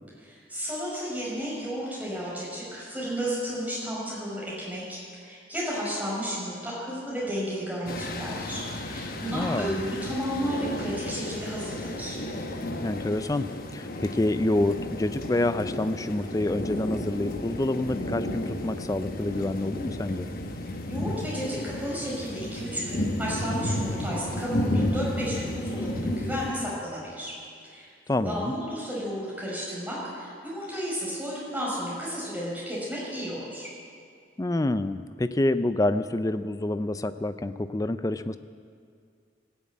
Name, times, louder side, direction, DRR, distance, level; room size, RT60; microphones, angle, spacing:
voice 1, 0.2-12.2 20.9-27.3 27.7-27.9 28.2-33.7, equal, 10° right, -6 dB, 4.9 m, -33 dB
sound 1, 7.9-26.5, left 1 dB, 50° left, 1.0 m, -33 dB
voice 2, 9.3-9.7 12.8-20.3 28.1-28.5 34.4-38.4, left 1 dB, 20° left, 12 dB, 0.4 m, -27 dB
17.5 x 7.3 x 8.5 m, 2.2 s
head